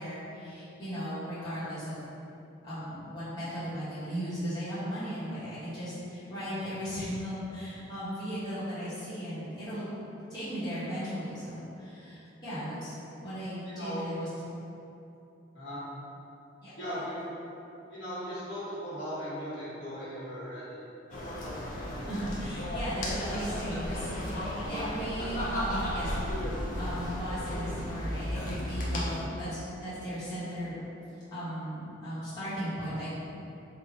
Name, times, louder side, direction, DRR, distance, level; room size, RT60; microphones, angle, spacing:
voice 1, 0.0-2.0 2.6-9.9 10.3-12.9 13.2-14.3 16.6-17.0 22.1-26.2 26.8-30.8 31.3-33.1, equal, 20° left, -14 dB, 1.2 m, -37 dB
voice 2, 16.8-17.3 17.9-20.8, equal, 70° left, -10 dB, 1.3 m, -38 dB
sound 1, 21.1-29.3, equal, 45° left, 0.5 m, -34 dB
3.3 x 2.3 x 3.9 m, 2.9 s
head